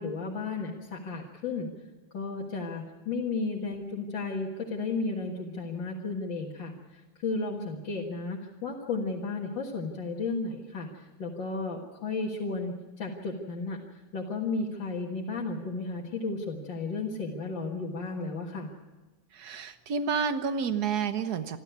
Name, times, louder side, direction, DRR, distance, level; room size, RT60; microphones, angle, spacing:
voice 1, 0.0-1.7 2.1-13.8 14.1-18.7, left 3 dB, 65° left, -2 dB, 2.5 m, -33 dB
voice 2, 19.3-21.6, right 6 dB, 55° right, 10 dB, 1.6 m, -30 dB
27.5 x 12.0 x 8.2 m, 1.2 s
omnidirectional pair, 2.2 m